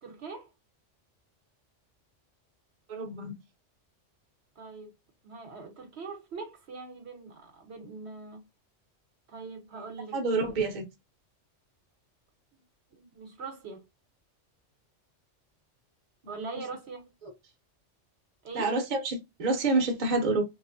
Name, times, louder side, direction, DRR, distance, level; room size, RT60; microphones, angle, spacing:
voice 1, 0.0-0.5 4.6-4.9 5.2-8.4 9.3-10.1 12.5-12.6 12.9-13.8 16.3-17.0 18.4-18.7, right 4 dB, 65° right, 1.0 m, -42 dB
voice 2, 2.9-3.4 10.1-10.8 16.2-16.3 17.2-17.3 18.5-20.4, right 3 dB, 45° right, 0.8 m, -28 dB
3.0 x 2.4 x 2.5 m
omnidirectional pair, 1.2 m